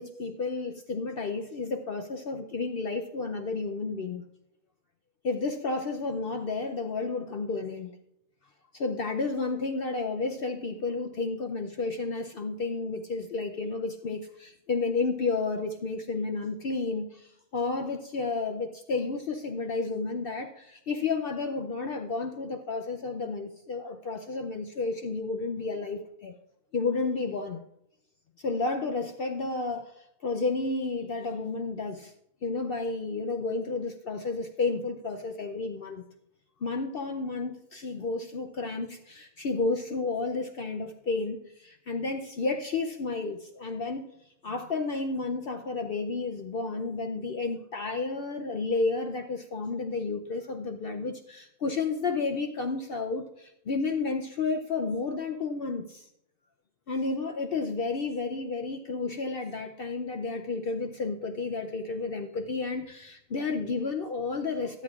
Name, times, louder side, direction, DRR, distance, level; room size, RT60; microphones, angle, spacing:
voice 1, 0.0-4.2 5.2-7.9 8.7-26.3 26.7-27.6 28.4-32.1 32.4-36.0 36.6-44.1 44.4-56.1 56.9-64.8, left 3 dB, 65° left, 5 dB, 0.5 m, -31 dB
22.5 x 8.1 x 2.4 m, 0.80 s
omnidirectional pair, 1.6 m